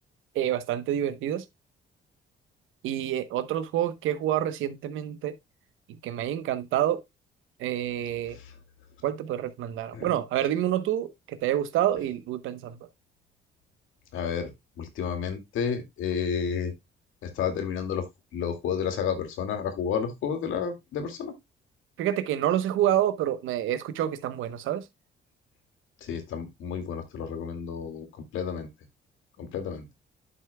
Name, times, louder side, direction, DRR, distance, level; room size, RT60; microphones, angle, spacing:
voice 1, 0.3-1.4 2.8-5.3 6.0-7.0 7.6-8.4 9.0-12.8 22.0-24.8, right 11 dB, 90° right, 1.0 m, -28 dB
voice 2, 14.1-14.5 14.8-16.7 17.2-18.1 18.3-21.3 26.0-28.1 28.3-28.7 29.4-29.9, left 7 dB, 85° left, 2.1 m, -31 dB
11.0 x 6.0 x 2.2 m
cardioid pair, 90°, 20 cm